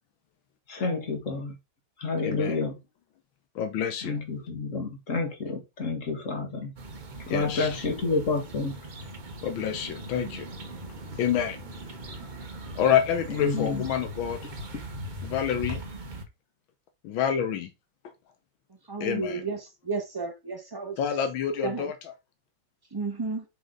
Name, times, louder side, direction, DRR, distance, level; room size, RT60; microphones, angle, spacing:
voice 1, 0.7-1.6 2.0-2.7 4.0-6.7 7.3-8.7 13.3-13.9, left 3 dB, 40° left, 2.0 m, -29 dB
voice 2, 2.2-2.6 3.5-4.2 7.3-7.8 9.4-10.5 11.2-11.6 12.8-14.4 15.2-15.8 17.0-17.7 19.0-19.4 21.0-21.9, left 8 dB, 85° left, 1.7 m, -27 dB
sound 1, 6.8-16.2, right 1 dB, 40° right, 0.7 m, -40 dB
voice 3, 18.9-21.0 21.6-21.9 22.9-23.4, right 4 dB, 15° right, 1.1 m, -32 dB
7.8 x 3.8 x 3.9 m
omnidirectional pair, 2.1 m